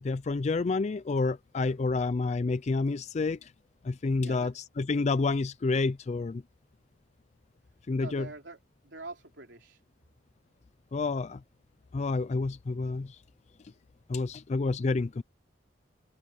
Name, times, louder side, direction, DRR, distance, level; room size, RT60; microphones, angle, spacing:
voice 1, 0.0-3.5 3.8-6.4 7.9-8.3 10.9-11.4 11.9-13.2 14.1-15.2, left 3 dB, 40° left, 0.4 m, -29 dB
voice 2, 4.2-4.5 8.0-9.8, right 3 dB, 70° right, 3.5 m, -45 dB
open air
head